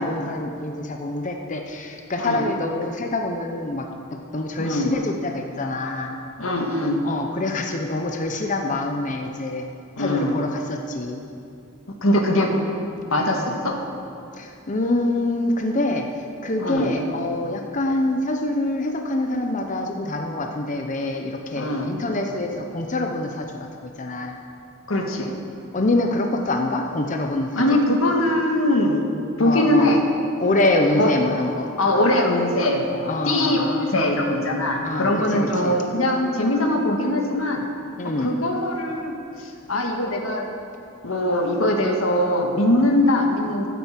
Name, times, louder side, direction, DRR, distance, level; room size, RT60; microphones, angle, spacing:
voice 1, 0.0-6.1 7.0-9.7 10.0-11.2 14.4-23.5 23.8-24.4 25.7-27.6 29.4-29.9 30.4-31.7 33.1-33.7 34.8-35.8 38.0-38.3, left 2 dB, 40° left, 3 dB, 0.8 m, -25 dB
voice 2, 4.6-4.9 6.4-7.0 10.0-10.4 12.0-12.5 13.1-13.7 16.6-16.9 21.5-21.9 24.9-25.3 27.6-29.0 29.4-30.0 31.0-31.1 31.8-37.6 38.2-39.1 39.4-40.5 41.0-43.7, left 1 dB, 90° left, 2 dB, 1.8 m, -21 dB
14.0 x 9.3 x 7.5 m, 2.5 s
head